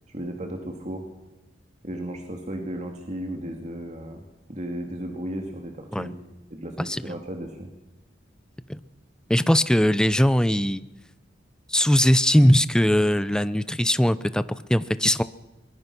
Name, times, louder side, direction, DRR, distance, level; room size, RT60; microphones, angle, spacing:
voice 1, 0.1-1.0 1.8-4.2 4.5-6.2 6.5-7.7, right 1 dB, 40° right, 3 dB, 2.3 m, -34 dB
voice 2, 9.3-10.8 11.7-15.2, equal, 5° left, 14 dB, 0.7 m, -20 dB
23.5 x 21.5 x 6.1 m, 1.1 s
head